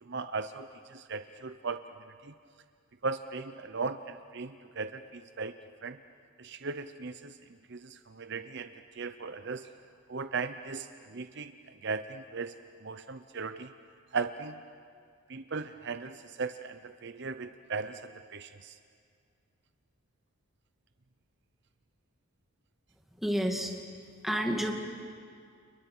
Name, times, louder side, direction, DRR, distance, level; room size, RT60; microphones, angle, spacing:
voice 1, 0.0-1.8 2.2-2.3 3.0-6.0 6.4-7.4 7.7-8.7 8.9-9.7 10.1-12.5 12.8-13.7 14.1-14.6 15.3-18.8, right 4 dB, 50° right, 10 dB, 0.7 m, -37 dB
voice 2, 23.2-23.7 24.2-24.7, equal, ahead, 1 dB, 2.3 m, -29 dB
30.0 x 29.5 x 6.1 m, 2.2 s
head